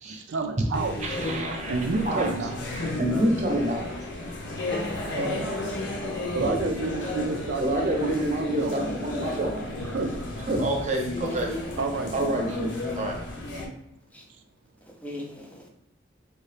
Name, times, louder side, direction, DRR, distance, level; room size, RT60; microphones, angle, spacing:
voice 1, 0.1-0.9 1.7-2.6 5.2-5.3 6.3-9.0 9.8-10.1 11.8-12.3, right 3 dB, 75° right, 5 dB, 0.4 m, -30 dB
sound 1, 0.7-13.7, left 2 dB, 80° left, 0.8 m, -33 dB
voice 2, 1.0-2.5 2.8-3.8 6.4-6.7 7.6-9.6 10.3-11.6 12.1-13.2, right 1 dB, 40° right, 1 dB, 0.7 m, -28 dB
voice 3, 4.7-5.7 11.2-12.4 14.1-14.2 14.8-15.7, left 1 dB, 10° left, 1 dB, 0.4 m, -37 dB
3.2 x 2.8 x 3.3 m, 0.83 s
head